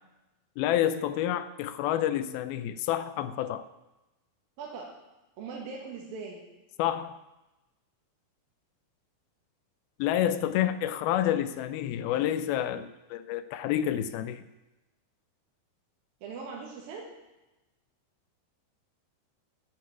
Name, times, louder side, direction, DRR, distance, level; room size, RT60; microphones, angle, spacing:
voice 1, 0.6-3.7 6.8-7.2 10.0-14.4, left 11 dB, 80° left, 13 dB, 2.4 m, -29 dB
voice 2, 4.6-4.9 5.4-6.4 16.2-17.0, right 5 dB, 65° right, -2 dB, 3.3 m, -40 dB
12.0 x 10.5 x 8.2 m, 1.0 s
omnidirectional pair, 4.5 m